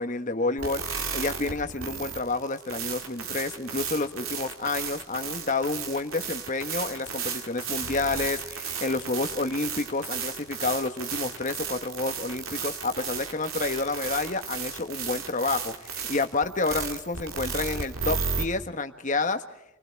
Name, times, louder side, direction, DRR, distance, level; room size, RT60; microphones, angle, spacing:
voice 1, 0.0-19.4, left 3 dB, 35° left, 8 dB, 1.3 m, -29 dB
sound 1, 0.6-18.4, right 6 dB, 85° right, 2.6 m, -34 dB
29.0 x 20.0 x 4.7 m, 0.88 s
head